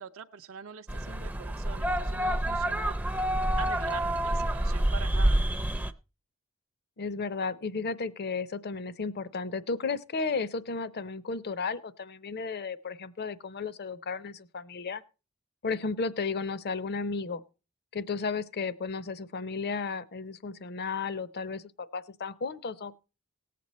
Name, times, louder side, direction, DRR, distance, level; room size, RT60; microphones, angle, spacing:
voice 1, 0.0-3.2 3.6-5.4, right 6 dB, 65° right, 6 dB, 0.6 m, -43 dB
sound 1, 0.9-5.9, right 1 dB, 10° right, 0.5 m, -28 dB
voice 2, 7.0-15.0 15.6-17.4 17.9-23.0, left 4 dB, 50° left, 16 dB, 0.7 m, -34 dB
18.0 x 7.6 x 4.2 m, 0.32 s
head